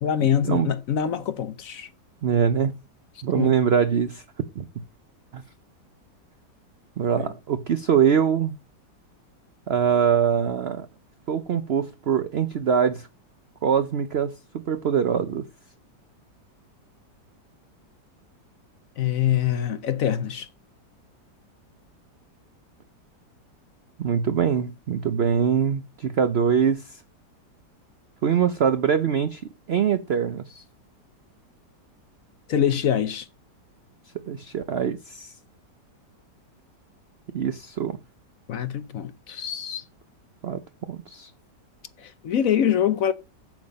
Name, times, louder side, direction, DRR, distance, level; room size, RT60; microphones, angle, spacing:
voice 1, 0.0-1.9 3.3-3.6 7.2-7.3 19.0-20.5 32.5-33.3 38.5-39.8 42.0-43.1, left 9 dB, 60° left, 1.0 m, -24 dB
voice 2, 2.2-2.8 3.2-4.2 4.6-4.7 5.3-5.4 7.0-8.5 9.7-10.9 11.3-13.1 13.6-14.3 14.7-15.4 24.0-27.0 28.2-29.4 29.7-30.6 34.3-35.3 37.3-38.0 40.4-40.6 40.9-41.3, right 7 dB, 70° right, 0.5 m, -23 dB
7.7 x 7.3 x 5.3 m
omnidirectional pair, 1.9 m